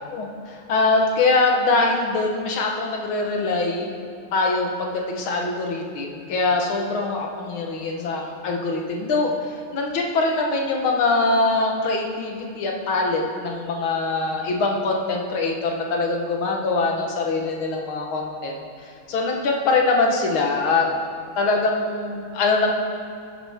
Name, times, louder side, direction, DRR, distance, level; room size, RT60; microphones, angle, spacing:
voice 1, 0.1-3.9 4.3-18.5 19.1-20.9 21.4-22.7, left 3 dB, 85° left, 1 dB, 2.1 m, -23 dB
16.0 x 9.8 x 3.6 m, 2.4 s
omnidirectional pair, 2.2 m